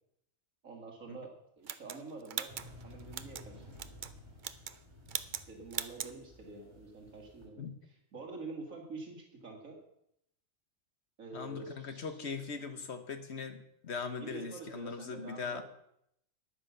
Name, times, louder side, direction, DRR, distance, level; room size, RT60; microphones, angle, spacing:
voice 1, 0.6-2.5 2.8-3.8 5.4-9.8 11.2-12.2 14.2-15.6, right 3 dB, 75° right, 1 dB, 2.4 m, -47 dB
sound 1, 1.7-3.5 3.8-4.1 4.4-4.8 5.1-5.5 5.7-6.1, right 8 dB, 50° right, 0.6 m, -39 dB
sound 2, 2.5-7.5, left 1 dB, 20° right, 2.7 m, -54 dB
voice 2, 11.3-15.6, left 5 dB, 55° left, 8 dB, 1.4 m, -40 dB
10.0 x 9.4 x 6.9 m, 0.76 s
omnidirectional pair, 1.4 m